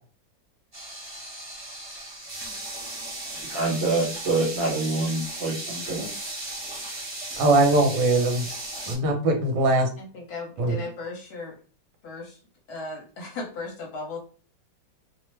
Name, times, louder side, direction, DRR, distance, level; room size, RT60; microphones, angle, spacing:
sound 1, 0.7-8.9, right 2 dB, 20° right, 0.9 m, -36 dB
voice 1, 3.4-6.1, right 2 dB, 45° right, -3 dB, 1.0 m, -26 dB
voice 2, 7.4-8.4 8.9-9.9 10.6-10.8, right 2 dB, 70° right, 3 dB, 1.3 m, -21 dB
voice 3, 10.0-11.6 12.0-12.4 12.7-14.2, left 3 dB, 60° left, -1 dB, 1.3 m, -36 dB
3.1 x 2.0 x 3.1 m, 0.40 s
omnidirectional pair, 2.1 m